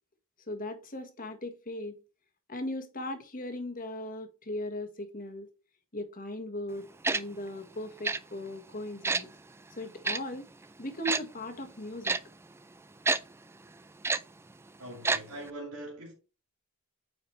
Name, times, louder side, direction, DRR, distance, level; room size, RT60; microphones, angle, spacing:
voice 1, 0.5-2.0 2.5-5.5 5.9-9.3 9.7-10.5 10.8-12.2, left 1 dB, 40° left, 1.5 m, -38 dB
Tick-tock, 7.0-7.2 8.0-8.2 9.0-9.2 10.0-10.2 11.1-11.2 12.0-12.2 13.1-13.2 14.0-14.2 15.0-15.2 15.5-15.6, right 3 dB, 10° right, 0.3 m, -27 dB
voice 2, 14.8-16.1, right 1 dB, 80° right, 2.5 m, -42 dB
9.0 x 4.9 x 3.2 m
head